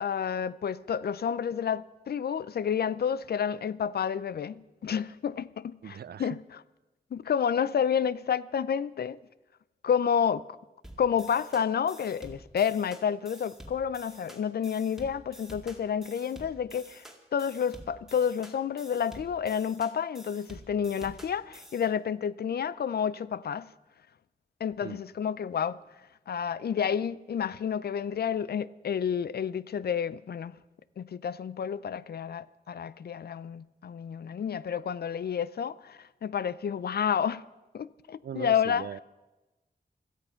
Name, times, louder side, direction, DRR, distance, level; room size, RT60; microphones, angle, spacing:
voice 1, 0.0-6.6 7.1-9.2 9.8-10.4 11.0-17.0 17.3-23.7 24.6-25.8 26.3-30.5 31.0-37.4 37.7-38.9, left 7 dB, 80° left, 0.5 m, -30 dB
voice 2, 5.8-6.4 24.8-25.0 38.2-39.0, right 8 dB, 80° right, 0.5 m, -39 dB
sound 1, 10.8-21.9, right 1 dB, ahead, 2.1 m, -49 dB
17.0 x 13.5 x 5.7 m
wide cardioid pair, 130°, 16 cm